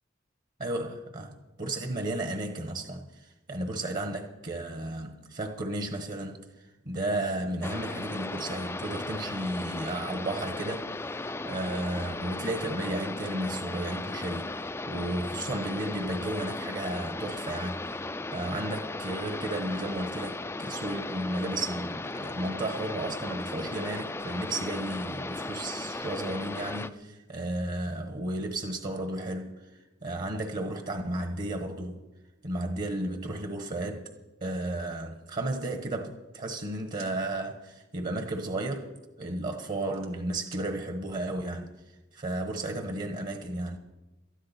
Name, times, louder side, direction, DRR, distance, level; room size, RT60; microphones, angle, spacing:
voice 1, 0.6-6.4 6.8-17.9 18.3-32.0 32.4-34.1 34.4-38.9 39.2-41.7 42.1-43.8, right 1 dB, 45° right, 1.3 m, -33 dB
sound 1, 7.6-26.9, left 2 dB, 10° left, 0.4 m, -36 dB
sound 2, 36.5-37.2 38.8-39.0 39.5-40.7, right 8 dB, 85° right, 1.8 m, -52 dB
19.0 x 13.0 x 4.4 m
head